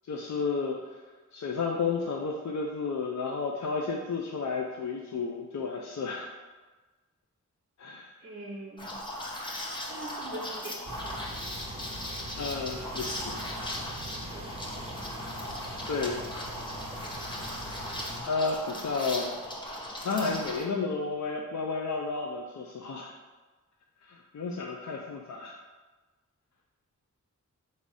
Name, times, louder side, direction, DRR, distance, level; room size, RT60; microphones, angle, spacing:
voice 1, 0.1-1.0 1.3-6.3 7.8-8.1 12.4-13.8 15.9-16.3 18.2-19.4 20.0-23.1 24.0-25.6, left 4 dB, 60° left, 0 dB, 0.5 m, -32 dB
voice 2, 8.2-9.0 9.9-10.8 14.3-15.0, right 1 dB, 40° right, -3 dB, 0.6 m, -43 dB
Liquid, 8.8-20.6, left 1 dB, 15° left, 0.8 m, -38 dB
sound 1, 10.8-18.2, right 1 dB, 20° right, 1.0 m, -41 dB
4.0 x 2.7 x 4.7 m, 1.3 s
wide cardioid pair, 80°, 31 cm